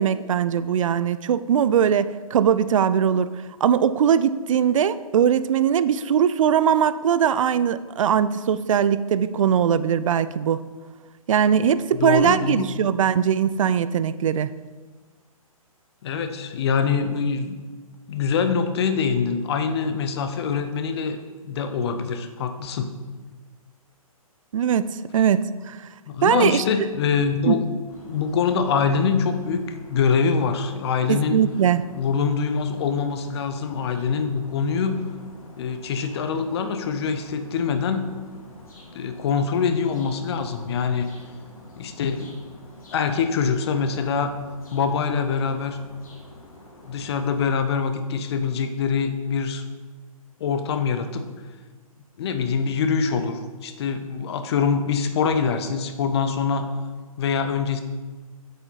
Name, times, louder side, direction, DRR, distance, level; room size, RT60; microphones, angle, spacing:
voice 1, 0.0-10.6 11.3-14.5 24.5-25.8 26.2-26.6 27.5-27.6 31.1-31.8, right 8 dB, 60° right, 15 dB, 0.4 m, -21 dB
voice 2, 11.9-12.7 16.0-17.6 18.1-21.2 21.4-22.9 26.1-27.7 28.0-29.6 29.9-31.4 32.0-35.0 35.6-38.1 38.9-41.1 41.8-42.3 42.9-44.3 44.7-45.8 46.9-49.6 50.4-51.2 52.2-56.7 57.2-57.8, left 6 dB, 45° left, 8 dB, 0.7 m, -24 dB
sound 1, 27.9-47.4, left 1 dB, 70° left, 1.8 m, -48 dB
7.9 x 4.8 x 3.9 m, 1.4 s
figure-of-eight pair, 130°, 19 cm